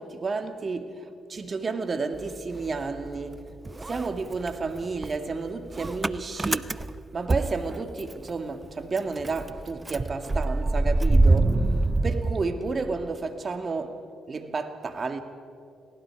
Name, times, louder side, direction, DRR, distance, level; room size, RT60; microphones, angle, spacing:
voice 1, 0.0-3.4 3.9-6.8 7.1-11.6 12.0-14.0 14.3-15.2, right 4 dB, 40° right, 2.1 m, -31 dB
Motor vehicle (road) / Engine starting, 2.1-3.4 3.7-8.3 8.6-8.7 9.0-13.1, right 2 dB, 25° right, 0.7 m, -25 dB
29.0 x 19.5 x 4.8 m
supercardioid pair, 65°, 0 cm